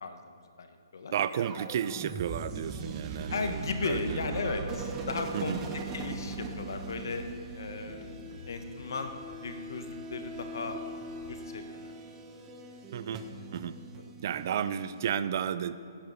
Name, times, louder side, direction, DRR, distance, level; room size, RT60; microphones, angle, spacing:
voice 1, 0.0-1.1 3.3-7.2 7.5-8.1 8.5-9.1 9.4-10.8 11.3-12.0 13.0-13.1 14.0-14.1, left 4 dB, 70° left, 7 dB, 1.3 m, -36 dB
voice 2, 1.1-4.5 5.3-5.6 8.3-8.4 12.9-13.2 13.5-13.8 14.2-15.8, right 9 dB, 50° right, 14 dB, 0.5 m, -33 dB
sound 1, 1.3-15.1, right 3 dB, 20° right, 1.0 m, -41 dB
sound 2, 4.3-11.4, left 5 dB, 50° left, 1.1 m, -54 dB
16.0 x 10.5 x 4.2 m, 2.6 s
hypercardioid pair, 140°, 2 cm